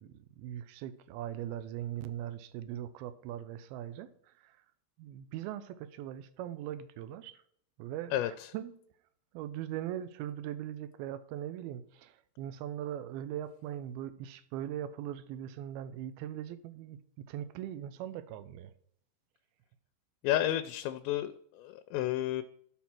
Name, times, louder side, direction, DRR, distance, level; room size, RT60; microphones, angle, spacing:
voice 1, 0.0-4.6 5.0-7.4 7.8-8.8 9.3-18.7, right 11 dB, 80° right, 12 dB, 2.2 m, -40 dB
voice 2, 20.2-22.4, left 13 dB, 85° left, 8 dB, 2.8 m, -31 dB
12.5 x 4.4 x 6.0 m, 0.65 s
omnidirectional pair, 5.1 m